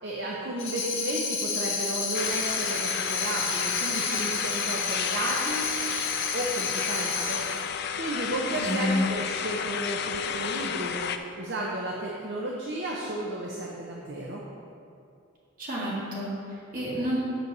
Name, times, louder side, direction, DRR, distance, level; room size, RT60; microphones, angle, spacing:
voice 1, 0.0-5.7 6.3-11.1 11.4-14.4, right 1 dB, 55° right, -3 dB, 0.8 m, -33 dB
Tambourine, 0.6-7.7, left 5 dB, 75° left, 1.8 m, -31 dB
sound 1, 2.1-11.2, left 7 dB, 50° left, 0.4 m, -32 dB
voice 2, 8.5-9.1 15.6-17.2, equal, 40° right, -6 dB, 2.1 m, -29 dB
8.1 x 4.6 x 6.7 m, 2.5 s
head